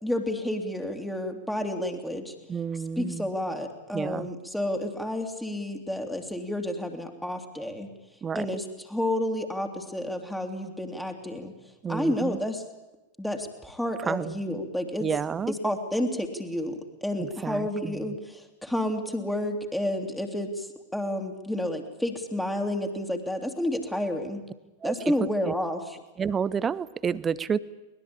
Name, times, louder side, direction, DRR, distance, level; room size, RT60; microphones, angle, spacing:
voice 1, 0.0-2.3 3.0-7.9 8.3-11.5 11.9-12.6 13.2-15.1 15.5-24.4 24.8-26.0, left 1 dB, 5° left, 3 dB, 2.9 m, -30 dB
voice 2, 2.5-3.3 3.9-4.3 8.2-8.5 11.8-12.4 14.1-14.4 15.0-15.5 17.2-18.2 24.8-25.5 26.2-27.6, right 6 dB, 20° right, 19 dB, 0.8 m, -30 dB
22.0 x 20.5 x 8.7 m, 1.0 s
figure-of-eight pair, 90°, 0 cm